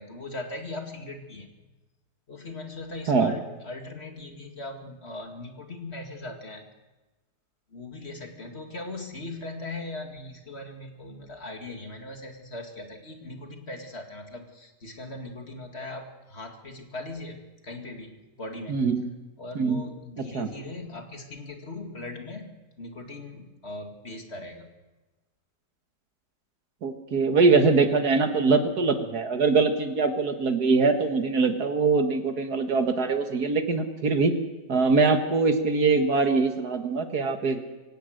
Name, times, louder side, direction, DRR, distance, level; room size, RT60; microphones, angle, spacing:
voice 1, 0.0-1.5 2.3-6.7 7.7-17.4 17.6-18.8 19.4-24.7, left 2 dB, 40° left, 3 dB, 2.5 m, -39 dB
voice 2, 18.7-19.0 19.6-19.8 20.2-20.5 26.8-34.4 34.7-37.6, right 4 dB, 70° right, 6 dB, 2.1 m, -23 dB
25.0 x 17.0 x 6.6 m, 1.2 s
omnidirectional pair, 1.8 m